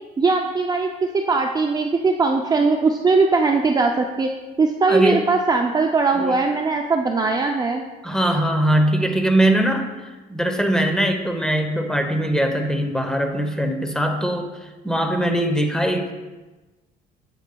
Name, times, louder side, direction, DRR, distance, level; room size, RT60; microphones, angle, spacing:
voice 1, 0.2-4.3 4.6-7.8, right 4 dB, 25° right, 3 dB, 0.4 m, -20 dB
voice 2, 4.9-5.2 6.2-6.4 8.0-9.9 10.3-16.1, right 1 dB, 5° left, 5 dB, 0.8 m, -21 dB
7.9 x 7.9 x 2.3 m, 1.2 s
cardioid pair, 110°, 17 cm